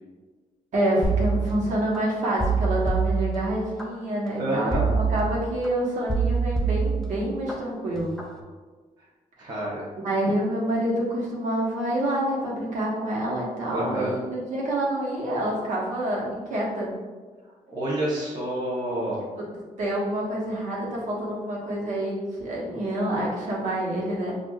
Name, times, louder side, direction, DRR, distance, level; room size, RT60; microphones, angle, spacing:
voice 1, 0.7-8.1 9.4-9.5 10.0-16.9 19.8-24.3, right 1 dB, 65° right, -4 dB, 1.0 m, -27 dB
sound 1, 1.0-2.0 2.4-3.9 4.7-5.7 6.1-7.5 8.0-8.3, right 5 dB, 5° left, 0.4 m, -25 dB
voice 2, 4.4-4.9 9.4-9.8 13.7-14.1 17.7-19.2, right 1 dB, 30° right, -6 dB, 0.8 m, -28 dB
6.1 x 2.4 x 2.3 m, 1.4 s
wide cardioid pair, 170°, 14 cm